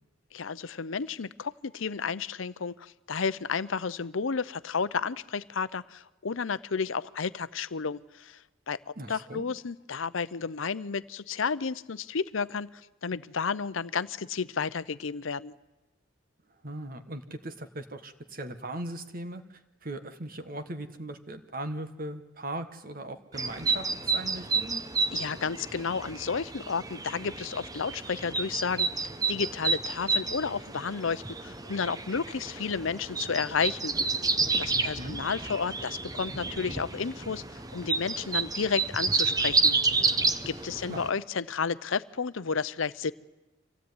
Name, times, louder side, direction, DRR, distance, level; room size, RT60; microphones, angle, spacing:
voice 1, 0.3-8.4 8.7-15.5 25.1-39.7 40.5-43.1, left 5 dB, 70° left, 16 dB, 0.7 m, -32 dB
voice 2, 9.0-9.5 16.6-24.8 34.7-35.2 40.9-41.2, right 1 dB, 45° right, 9 dB, 1.4 m, -39 dB
sound 1, 23.3-41.1, right 4 dB, 20° right, 0.8 m, -30 dB
25.0 x 16.0 x 9.6 m, 1.0 s
head